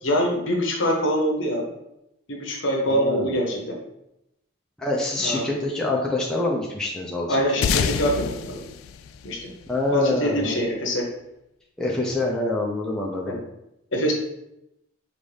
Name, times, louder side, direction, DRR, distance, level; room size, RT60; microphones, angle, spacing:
voice 1, 0.0-1.6 2.3-3.8 5.2-5.4 7.3-8.6 9.2-9.5 9.9-11.0 13.2-13.4 13.9-14.1, equal, 65° left, 0 dB, 1.0 m, -24 dB
voice 2, 2.9-3.3 4.8-7.6 9.7-10.6 11.8-13.4, left 2 dB, 5° left, -4 dB, 0.5 m, -26 dB
sound 1, 7.6-10.4, left 6 dB, 80° left, 0.3 m, -27 dB
5.4 x 2.6 x 3.3 m, 0.85 s
head